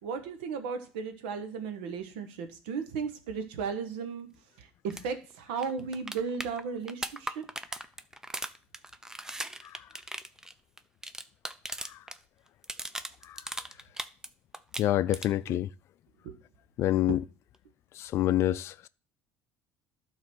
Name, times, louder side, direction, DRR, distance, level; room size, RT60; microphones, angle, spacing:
voice 1, 0.0-4.3 4.6-7.4 15.5-15.6 16.2-16.4 17.1-17.2, right 5 dB, 85° right, 1.3 m, -35 dB
sound 1, 4.9-5.0 5.3-5.4 5.6-12.2 12.5-14.3 14.5-15.5 17.5-17.6, right 1 dB, 10° right, 0.6 m, -38 dB
voice 2, 14.8-15.7 16.8-17.2 18.0-18.9, left 13 dB, 60° left, 0.4 m, -26 dB
12.0 x 4.0 x 6.2 m
supercardioid pair, 85°, 5 cm